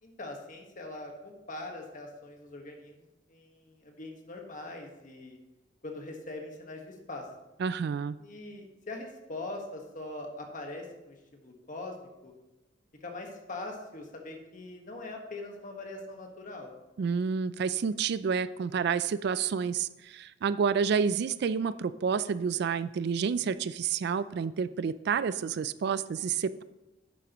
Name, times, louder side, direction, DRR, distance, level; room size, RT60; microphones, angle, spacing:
voice 1, 0.0-5.4 5.8-7.3 8.2-12.3 13.0-16.7, left 2 dB, 45° left, 2 dB, 1.5 m, -42 dB
voice 2, 7.6-8.2 17.0-26.6, right 6 dB, 60° right, 15 dB, 0.3 m, -29 dB
10.5 x 8.3 x 3.0 m, 1.0 s
head